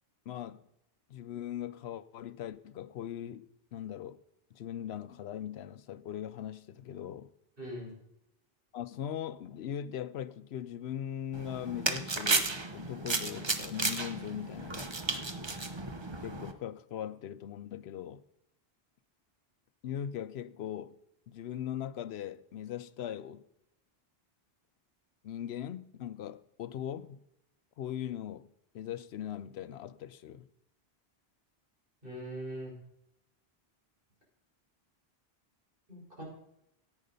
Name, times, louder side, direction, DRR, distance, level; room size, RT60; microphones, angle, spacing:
voice 1, 0.3-0.6 1.1-4.2 4.5-7.3 8.7-14.9 16.2-18.2 19.8-20.9 21.3-23.4 25.2-27.2 27.8-28.5 28.7-30.4, left 10 dB, 85° left, 0.9 m, -40 dB
voice 2, 7.6-7.9 32.0-32.7 35.9-36.2, equal, 60° right, 5.4 m, -41 dB
sound 1, 11.3-16.5, right 3 dB, 30° right, 0.8 m, -33 dB
10.5 x 9.3 x 5.3 m
omnidirectional pair, 1.0 m